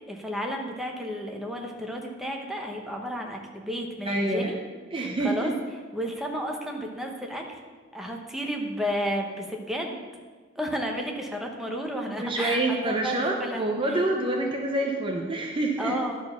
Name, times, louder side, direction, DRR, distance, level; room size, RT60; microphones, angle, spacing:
voice 1, 0.1-4.6 4.9-5.5 5.9-7.4 7.9-10.0 10.6-14.0 15.8-16.2, equal, ahead, 1 dB, 1.0 m, -32 dB
voice 2, 4.1-4.5 4.9-5.5 12.2-16.0, right 2 dB, 25° right, 1 dB, 0.7 m, -27 dB
11.0 x 4.6 x 5.7 m, 1.4 s
head